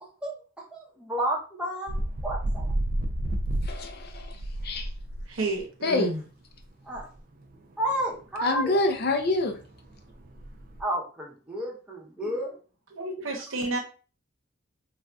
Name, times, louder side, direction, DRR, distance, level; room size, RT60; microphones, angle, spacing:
voice 1, 0.7-1.9 2.2-2.7 6.8-7.1 7.8-8.8 10.8-12.6, right 1 dB, 5° right, -3 dB, 0.6 m, -31 dB
sound 1, 1.9-5.3 5.6-5.7 6.6-6.7 6.9-7.0 7.4-7.5 7.8-8.0 8.7-8.8 9.0-10.8, right 1 dB, 40° right, 0.3 m, -31 dB
voice 2, 3.6-4.4 4.6-4.9 5.8-6.1 8.4-9.5, left 2 dB, 45° left, 5 dB, 0.4 m, -26 dB
voice 3, 5.3-6.2 12.2-12.3 12.9-13.8, right 2 dB, 70° right, 1 dB, 0.8 m, -31 dB
3.3 x 2.5 x 2.2 m, 0.38 s
head